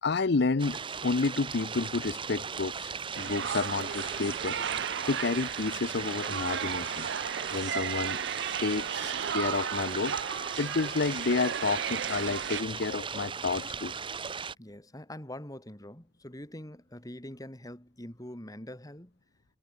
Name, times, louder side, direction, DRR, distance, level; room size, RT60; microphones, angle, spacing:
voice 1, 0.0-7.1 7.5-8.2 8.6-13.9, left 4 dB, 60° left, 0.7 m, -30 dB
sound 1, 0.6-14.6, right 6 dB, 25° right, 0.7 m, -38 dB
sound 2, 3.1-12.6, right 8 dB, 65° right, 0.5 m, -35 dB
voice 2, 14.6-19.1, left 1 dB, 20° left, 3.6 m, -44 dB
head